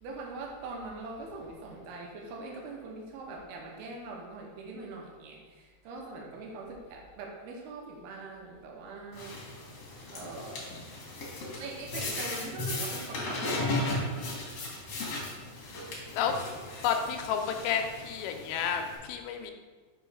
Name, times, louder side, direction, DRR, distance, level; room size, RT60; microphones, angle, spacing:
voice 1, 0.0-9.4 10.1-10.6 11.5-14.1, right 3 dB, 80° right, 0 dB, 2.7 m, -42 dB
sound 1, 9.1-19.0, left 2 dB, 70° left, 1.4 m, -36 dB
voice 2, 16.8-19.5, left 8 dB, 85° left, 4 dB, 2.7 m, -31 dB
6.7 x 3.0 x 4.8 m, 1.4 s
omnidirectional pair, 4.8 m